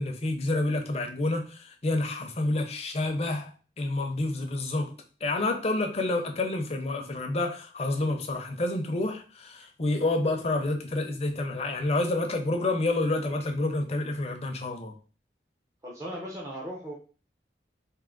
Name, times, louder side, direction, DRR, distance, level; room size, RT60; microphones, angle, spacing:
voice 1, 0.0-3.5 3.8-4.9 5.2-15.0, left 2 dB, 35° left, 0.6 m, -28 dB
voice 2, 15.8-16.9, equal, 20° right, 0.7 m, -37 dB
3.6 x 2.7 x 3.8 m
head